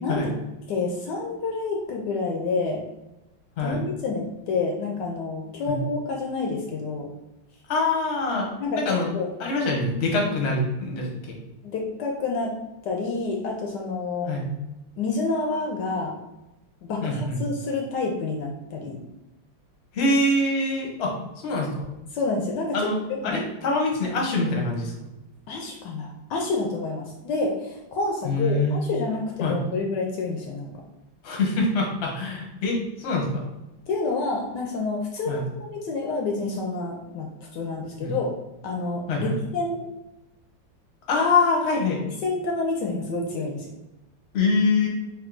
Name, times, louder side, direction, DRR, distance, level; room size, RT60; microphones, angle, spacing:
voice 1, 0.0-0.3 0.7-2.8 3.6-7.1 8.6-8.8 9.1-9.3 10.2-10.3 11.6-12.6 12.8-14.3 15.0-16.2 16.8-19.0 22.1-23.4 25.5-30.7 33.9-38.3 38.6-39.8 42.2-43.6, left 3 dB, 75° left, 0 dB, 1.1 m, -28 dB
voice 2, 7.7-9.1 9.4-11.4 14.2-14.5 17.0-17.4 19.9-21.1 21.4-21.9 22.7-24.9 28.2-28.8 29.4-29.6 31.2-33.4 35.3-35.5 38.0-38.1 39.1-39.3 41.1-42.0 44.3-44.9, left 2 dB, 45° left, -1 dB, 0.9 m, -24 dB
3.6 x 2.6 x 3.7 m, 0.96 s
omnidirectional pair, 2.1 m